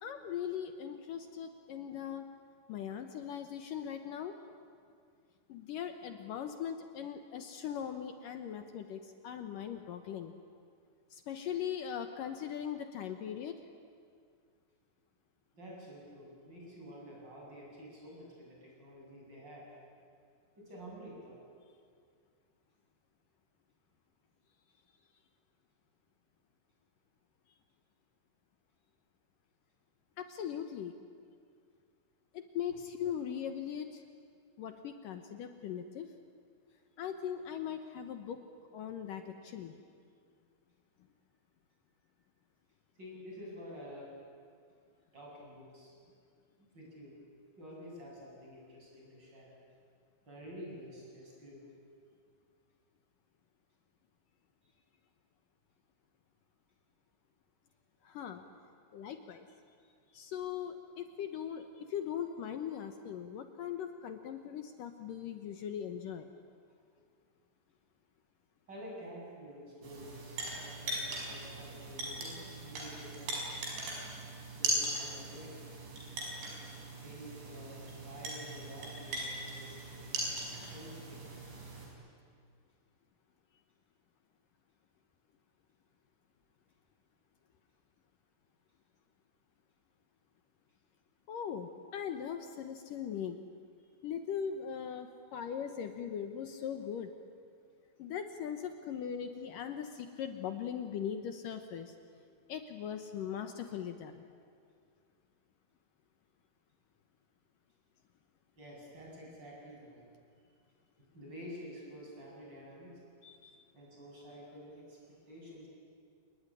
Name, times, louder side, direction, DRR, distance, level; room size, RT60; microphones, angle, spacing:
voice 1, 0.0-2.3 2.7-4.4 5.5-10.3 11.1-13.6 30.2-30.9 32.3-34.0 34.6-36.1 37.0-38.4 38.7-39.8 58.0-58.4 58.9-59.5 60.1-66.3 91.3-93.4 94.0-97.1 98.0-102.0 102.5-104.2 113.2-113.6, left 8 dB, 70° left, 7 dB, 2.2 m, -40 dB
voice 2, 15.5-19.7 20.6-21.4 43.0-44.2 45.1-46.0 46.6-47.1 47.6-49.5 50.3-51.7 54.6-54.7 68.7-73.3 74.5-75.6 77.0-80.2 80.6-81.3 108.6-110.1 111.1-113.0 113.7-115.7, equal, 25° right, -3 dB, 8.3 m, -49 dB
sound 1, 69.8-81.9, right 1 dB, 85° right, 8.0 m, -40 dB
29.0 x 20.0 x 9.9 m, 2.2 s
omnidirectional pair, 5.1 m